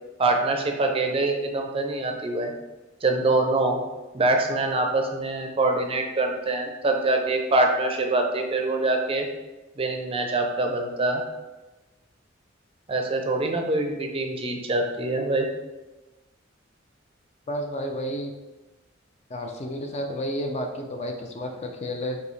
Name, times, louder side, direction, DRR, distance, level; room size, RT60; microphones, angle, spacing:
voice 1, 0.2-2.5 3.0-3.8 4.1-9.3 9.8-11.2 12.9-15.5, right 2 dB, 30° right, 3 dB, 0.5 m, -24 dB
voice 2, 17.5-18.3 19.3-22.2, equal, 35° left, 3 dB, 0.5 m, -31 dB
5.2 x 2.7 x 3.2 m, 1.1 s
head